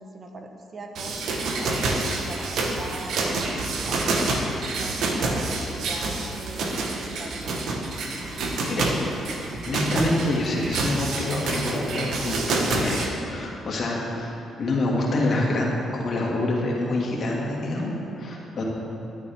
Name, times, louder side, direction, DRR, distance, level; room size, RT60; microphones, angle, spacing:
voice 1, 0.0-7.6 8.9-9.3, right 2 dB, 45° right, 3 dB, 1.0 m, -41 dB
sound 1, 0.9-13.1, right 2 dB, 75° right, 1.1 m, -27 dB
voice 2, 9.6-18.6, left 2 dB, 55° left, -3 dB, 2.1 m, -26 dB
12.0 x 9.5 x 3.5 m, 2.8 s
cardioid pair, 90°, 0 cm